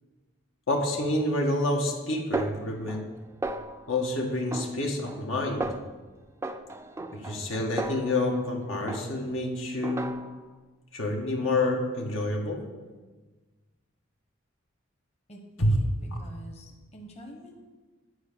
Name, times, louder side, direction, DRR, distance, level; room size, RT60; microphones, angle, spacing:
voice 1, 0.7-3.1 3.9-5.7 7.1-10.1 10.9-12.6 15.6-15.8, left 1 dB, 80° left, 0 dB, 1.5 m, -28 dB
Snare drum, 2.3-3.2 3.4-4.0 4.5-5.3 5.6-6.0 6.4-8.5 8.9-9.4 9.8-10.5, right 2 dB, 15° right, 0.4 m, -35 dB
voice 2, 15.3-15.9 16.2-17.5, right 1 dB, 35° left, 1 dB, 1.1 m, -45 dB
9.6 x 4.8 x 6.8 m, 1.3 s
head